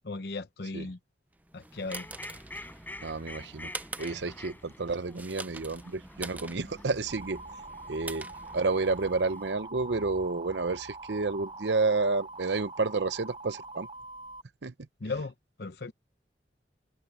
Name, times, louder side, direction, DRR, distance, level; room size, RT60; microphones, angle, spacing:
voice 1, 0.0-1.0 1.5-2.1 15.0-15.3 15.6-15.9, left 3 dB, 65° left, 0.8 m, -36 dB
sound 1, 1.4-9.2, right 2 dB, 10° right, 0.5 m, -45 dB
Fowl, 1.7-9.5, left 1 dB, 10° left, 4.5 m, -48 dB
voice 2, 3.0-3.7 4.0-7.4 7.9-8.3 8.5-13.9 14.6-14.7, right 3 dB, 90° right, 0.8 m, -30 dB
sound 2, 7.1-14.4, right 3 dB, 25° right, 0.9 m, -44 dB
head